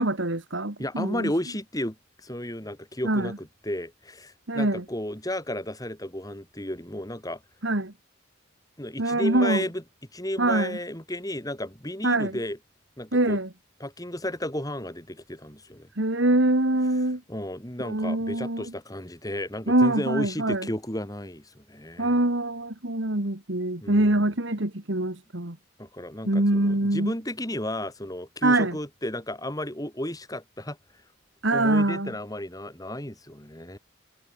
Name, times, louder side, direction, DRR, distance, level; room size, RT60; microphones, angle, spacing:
voice 1, 0.0-1.3 3.0-3.3 4.5-4.8 7.6-7.9 9.0-9.6 10.4-10.8 12.0-12.3 13.1-13.5 16.0-17.2 17.8-18.7 19.7-20.7 22.0-25.6 26.3-27.1 28.4-28.7 31.4-32.1, right 1 dB, 65° right, 2.3 m, -24 dB
voice 2, 0.8-7.4 8.8-9.8 10.1-12.6 13.0-13.4 13.8-15.9 17.3-22.1 23.8-24.3 25.8-30.8 31.5-33.8, left 1 dB, 15° left, 4.9 m, -33 dB
head